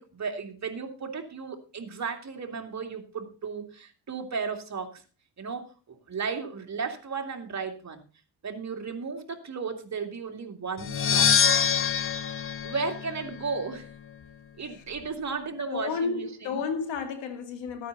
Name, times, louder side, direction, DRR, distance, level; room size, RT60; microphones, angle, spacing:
voice 1, 0.0-5.0 5.4-5.7 6.1-8.0 8.4-11.3 12.6-13.9 14.6-16.6, right 5 dB, 40° right, 2.4 m, -34 dB
sound 1, 10.8-13.6, left 7 dB, 30° left, 0.7 m, -25 dB
voice 2, 15.7-17.9, left 5 dB, 85° left, 2.2 m, -32 dB
13.5 x 9.3 x 4.0 m
cardioid pair, 90°, 43 cm